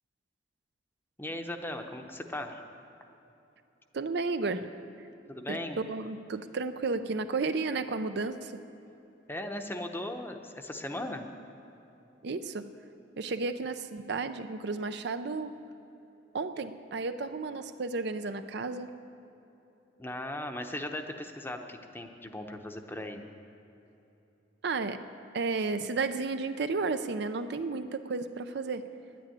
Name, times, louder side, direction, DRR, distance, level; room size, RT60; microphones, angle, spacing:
voice 1, 1.2-2.6 5.3-5.8 9.3-11.2 20.0-23.2, left 1 dB, 10° left, 5 dB, 0.8 m, -38 dB
voice 2, 3.9-4.7 5.5-8.5 12.2-12.7 13.2-15.5 16.3-18.9 24.6-25.0 25.3-28.8, right 3 dB, 65° right, 10 dB, 0.5 m, -32 dB
10.5 x 9.3 x 9.8 m, 3.0 s
head